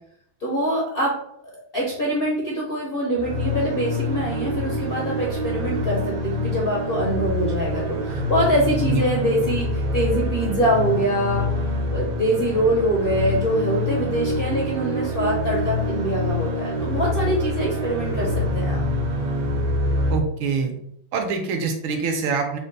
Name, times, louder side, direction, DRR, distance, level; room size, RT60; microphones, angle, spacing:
voice 1, 0.4-1.2 1.7-11.5 11.9-18.8, right 1 dB, 80° left, -3 dB, 0.5 m, -24 dB
sound 1, 3.2-20.2, left 1 dB, 65° right, 1.3 m, -25 dB
voice 2, 20.1-20.7 21.1-22.6, right 5 dB, 80° right, 4 dB, 1.5 m, -24 dB
5.1 x 2.2 x 3.9 m, 0.71 s
omnidirectional pair, 2.3 m